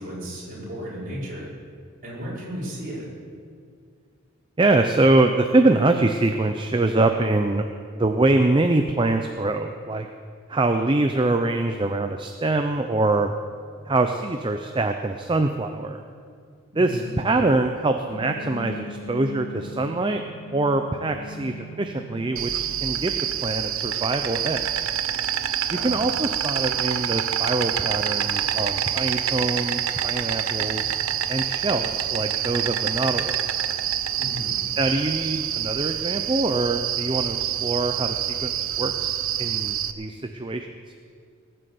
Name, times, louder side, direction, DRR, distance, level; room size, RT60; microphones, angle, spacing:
voice 1, 0.0-1.5 2.0-3.0 16.7-17.1 25.7-26.0 34.2-34.5, equal, 40° right, -7 dB, 5.1 m, -34 dB
voice 2, 4.6-7.6 7.9-10.1 10.5-13.3 13.9-16.0 16.8-20.2 20.5-24.7 25.7-30.9 31.3-33.4 34.8-40.7, right 2 dB, 20° right, 6 dB, 0.5 m, -24 dB
sound 1, 18.1-23.2, equal, 75° left, 2.4 m, -39 dB
Insect, 22.4-39.9, right 10 dB, 70° right, 0.7 m, -26 dB
19.0 x 7.8 x 7.8 m, 2.1 s
head